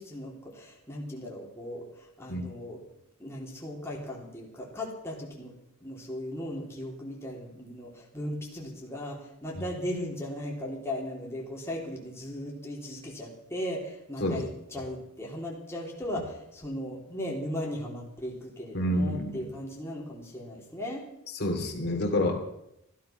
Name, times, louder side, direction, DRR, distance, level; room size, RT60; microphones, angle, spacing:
voice 1, 0.0-2.8 3.2-5.5 5.8-21.0, left 1 dB, 10° left, -3 dB, 3.4 m, -37 dB
voice 2, 18.7-19.4 21.4-22.4, left 1 dB, 50° left, 1 dB, 2.9 m, -28 dB
15.5 x 12.5 x 5.9 m, 0.82 s
head